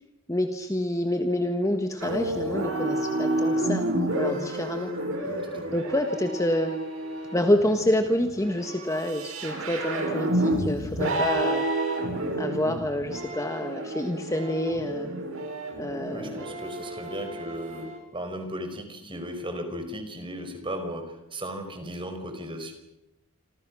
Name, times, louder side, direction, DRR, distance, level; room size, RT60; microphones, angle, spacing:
voice 1, 0.3-3.9 4.1-4.9 5.2-5.3 5.7-6.8 7.3-11.7 12.4-15.1 15.8-16.5, left 1 dB, 15° left, 6 dB, 1.6 m, -27 dB
sound 1, 2.0-18.0, right 1 dB, 70° right, 7.9 m, -30 dB
voice 2, 5.3-5.8 16.1-22.7, equal, 25° right, 6 dB, 5.0 m, -36 dB
28.0 x 26.0 x 6.3 m, 0.87 s
head